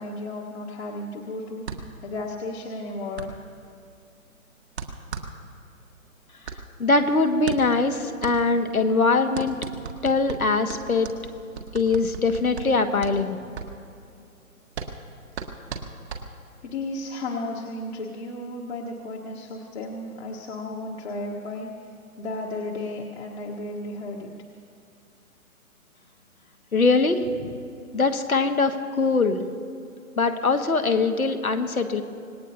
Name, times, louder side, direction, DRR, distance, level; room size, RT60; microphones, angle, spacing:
voice 1, 0.0-1.6 2.0-3.3 16.6-21.7 22.2-24.3, left 2 dB, 50° left, -2 dB, 1.5 m, -34 dB
sound 1, 1.6-16.7, right 5 dB, 50° right, 1.6 m, -38 dB
voice 2, 6.8-9.6 10.0-11.1 11.7-13.4 26.7-27.5 27.9-29.4 30.2-32.0, left 3 dB, 80° left, 6 dB, 1.5 m, -22 dB
26.0 x 19.0 x 2.8 m, 2.5 s
figure-of-eight pair, 130°, 43 cm